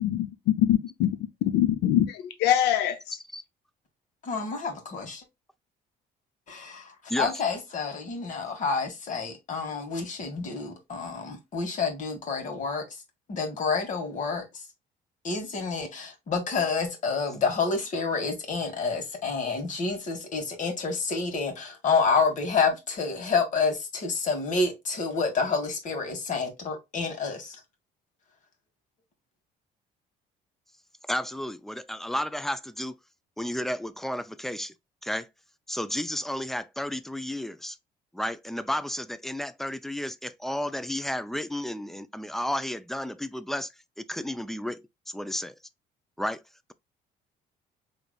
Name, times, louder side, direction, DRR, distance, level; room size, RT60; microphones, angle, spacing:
voice 1, 0.6-1.1 1.5-3.2, left 11 dB, 85° left, 0.7 m, -23 dB
voice 2, 4.2-5.2 6.5-13.0 13.3-14.6 15.2-27.6, left 4 dB, 50° left, 1.7 m, -29 dB
voice 3, 31.1-33.0 33.4-34.7 35.0-35.3 35.7-37.8 38.1-43.7 44.0-45.5 46.2-46.4, left 1 dB, ahead, 0.3 m, -32 dB
5.0 x 3.1 x 2.3 m
cardioid pair, 110°, 17 cm